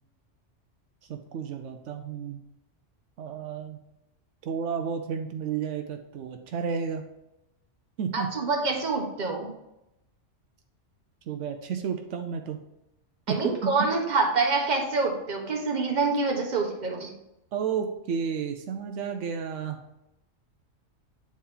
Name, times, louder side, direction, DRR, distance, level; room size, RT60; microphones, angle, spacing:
voice 1, 1.0-2.4 3.2-3.8 4.4-7.1 8.0-8.3 11.3-12.6 13.3-13.4 17.5-19.9, right 7 dB, 80° right, 5 dB, 0.9 m, -32 dB
voice 2, 8.1-9.5 13.3-17.1, right 3 dB, 40° right, 1 dB, 1.3 m, -26 dB
8.7 x 4.2 x 3.7 m, 0.89 s
omnidirectional pair, 1.3 m